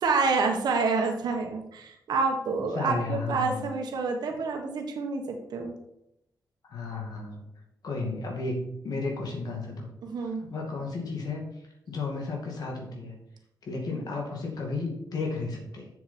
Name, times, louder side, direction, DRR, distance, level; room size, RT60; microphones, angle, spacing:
voice 1, 0.0-5.7 10.0-10.4, right 4 dB, 85° right, 3 dB, 1.3 m, -28 dB
voice 2, 2.7-3.7 6.7-7.4 7.8-9.9 10.4-11.4 11.9-13.1 13.6-15.9, left 3 dB, 70° left, 0 dB, 2.2 m, -33 dB
7.3 x 7.1 x 4.4 m, 0.80 s
wide cardioid pair, 125°, 7 cm